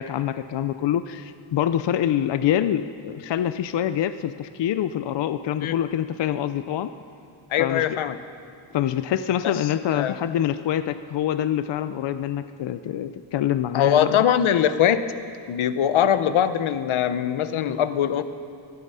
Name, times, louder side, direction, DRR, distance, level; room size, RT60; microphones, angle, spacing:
voice 1, 0.0-6.9 7.6-8.0 8.7-14.2, left 10 dB, 65° left, 11 dB, 0.6 m, -25 dB
voice 2, 7.5-8.2 9.4-9.5 9.9-10.1 13.7-15.0 15.5-18.2, left 9 dB, 90° left, 12 dB, 0.8 m, -21 dB
18.5 x 13.0 x 5.6 m, 2.3 s
wide cardioid pair, 170°, 47 cm